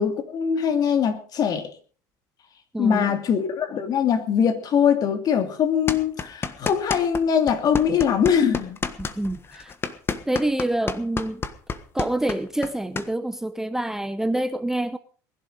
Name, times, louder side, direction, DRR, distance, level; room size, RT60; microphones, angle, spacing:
voice 1, 0.0-1.7 2.8-8.8, left 7 dB, 45° left, 2.8 m, -22 dB
voice 2, 2.7-3.2 9.0-9.7 10.3-11.4 11.9-15.0, right 1 dB, 5° right, 0.8 m, -26 dB
sound 1, 5.9-7.2 7.5-13.1, left 5 dB, 25° left, 1.4 m, -29 dB
20.0 x 11.5 x 5.0 m
supercardioid pair, 110°, 9 cm